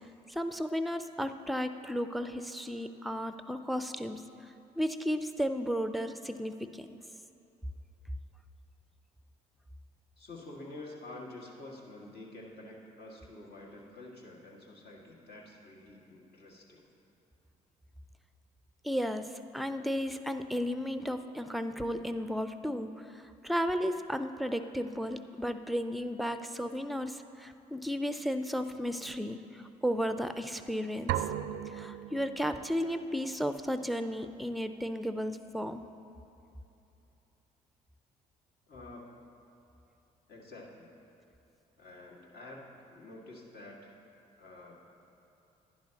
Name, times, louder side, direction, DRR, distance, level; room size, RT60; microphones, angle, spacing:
voice 1, 0.3-4.5 4.8-7.0 18.8-31.3 31.7-35.8, equal, ahead, 10 dB, 0.5 m, -34 dB
voice 2, 10.2-16.9 38.7-39.1 40.3-40.9 41.8-43.9 44.4-44.8, left 2 dB, 55° left, -3 dB, 2.0 m, -48 dB
sound 1, 31.1-32.9, right 11 dB, 70° right, 0.4 m, -36 dB
11.5 x 10.5 x 2.9 m, 2.9 s
hypercardioid pair, 50°, 20 cm